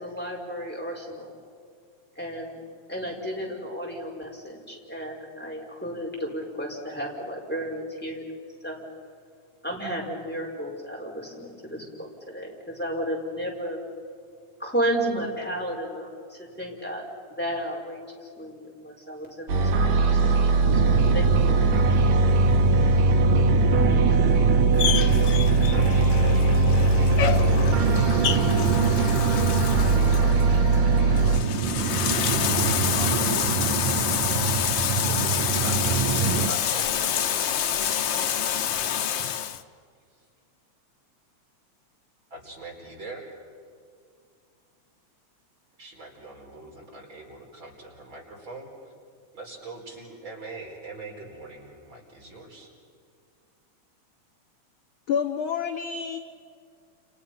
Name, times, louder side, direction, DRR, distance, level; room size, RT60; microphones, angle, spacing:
voice 1, 0.0-1.3 2.2-2.6 2.9-8.2 8.6-8.8 9.6-13.8 14.6-17.0 17.4-20.3 20.7-21.6 21.9-22.1, equal, 5° left, -2 dB, 5.3 m, -33 dB
sound 1, 19.5-31.4, right 3 dB, 65° right, 2.7 m, -21 dB
sound 2, 20.6-36.5, right 6 dB, 90° right, 2.6 m, -27 dB
Bathtub (filling or washing), 24.8-39.6, left 9 dB, 75° left, 1.0 m, -28 dB
voice 2, 27.0-29.6 29.9-38.4 42.3-43.4 45.8-48.9 49.3-52.7, right 2 dB, 40° right, -1 dB, 5.2 m, -43 dB
voice 3, 55.1-56.2, left 7 dB, 60° left, 6 dB, 1.4 m, -28 dB
30.0 x 29.5 x 5.7 m, 2.2 s
omnidirectional pair, 3.4 m